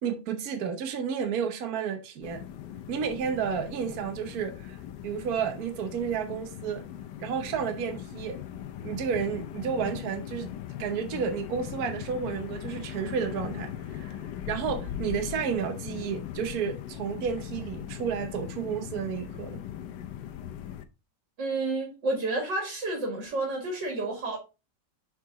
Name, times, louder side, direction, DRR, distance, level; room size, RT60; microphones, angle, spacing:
voice 1, 0.0-2.4 2.9-6.8 7.2-8.4 8.8-10.5 10.8-14.2 14.5-19.6, right 7 dB, 60° right, 1.3 m, -31 dB
sound 1, 2.2-20.9, left 10 dB, 80° left, 1.3 m, -39 dB
voice 2, 21.4-24.4, right 2 dB, 85° right, 2.7 m, -30 dB
6.4 x 4.6 x 3.7 m
omnidirectional pair, 1.9 m